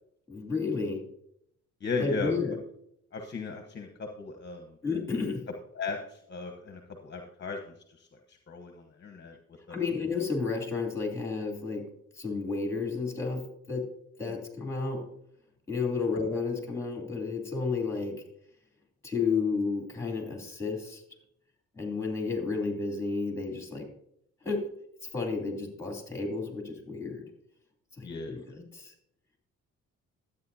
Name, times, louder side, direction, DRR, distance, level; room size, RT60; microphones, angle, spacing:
voice 1, 0.3-1.0 2.0-2.6 4.8-5.4 9.7-11.9 12.1-13.8 14.2-15.0 15.7-18.2 19.0-21.0 21.7-23.9 24.4-24.6 25.1-27.2 28.0-28.9, left 4 dB, 10° left, 1 dB, 3.0 m, -31 dB
voice 2, 1.8-2.3 3.1-4.7 5.7-7.6 8.5-9.4 9.7-9.8 28.0-28.4, left 4 dB, 35° left, 3 dB, 1.1 m, -36 dB
12.5 x 8.6 x 2.8 m, 0.72 s
cardioid pair, 90°, 30 cm